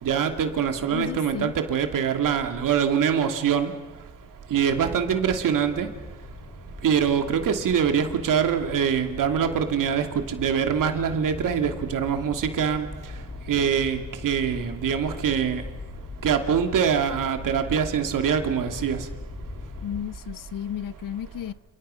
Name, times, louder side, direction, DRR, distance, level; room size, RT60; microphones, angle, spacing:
voice 1, 0.0-3.7 4.5-5.9 6.8-12.9 13.5-14.0 14.2-15.6 16.2-19.0, right 7 dB, 80° right, 2.6 m, -24 dB
voice 2, 0.9-1.5 19.8-21.5, left 10 dB, 85° left, 0.9 m, -33 dB
sound 1, 4.1-20.0, left 3 dB, 35° left, 3.8 m, -41 dB
30.0 x 29.0 x 5.7 m
cardioid pair, 100°, 32 cm